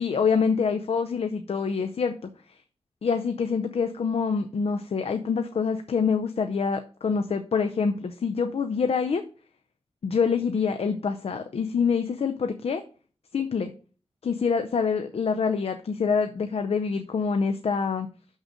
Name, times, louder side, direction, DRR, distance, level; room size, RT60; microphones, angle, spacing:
voice 1, 0.0-2.1 3.0-9.2 10.0-12.8 13.3-13.7 14.2-18.1, left 5 dB, 70° left, 7 dB, 0.6 m, -26 dB
6.4 x 6.3 x 5.1 m, 0.40 s
wide cardioid pair, 110°, 11 cm